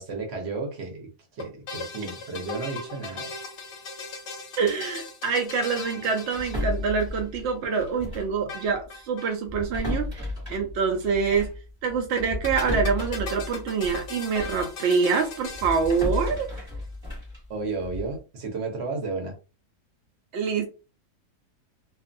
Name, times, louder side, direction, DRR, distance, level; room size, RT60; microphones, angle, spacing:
voice 1, 0.0-3.3 17.5-19.3, right 3 dB, 50° right, 0.9 m, -33 dB
sound 1, 1.4-7.2 8.5-9.3 9.6-9.7 9.9-10.0 12.2-16.7, left 3 dB, 60° left, 0.8 m, -38 dB
voice 2, 4.6-11.5 11.8-16.5 20.3-20.7, right 5 dB, 75° right, 0.6 m, -26 dB
sound 2, 6.3-8.4 8.7-8.9 9.4-14.7 15.1-18.2, left 2 dB, 20° right, 1.2 m, -34 dB
2.5 x 2.4 x 2.5 m
omnidirectional pair, 1.7 m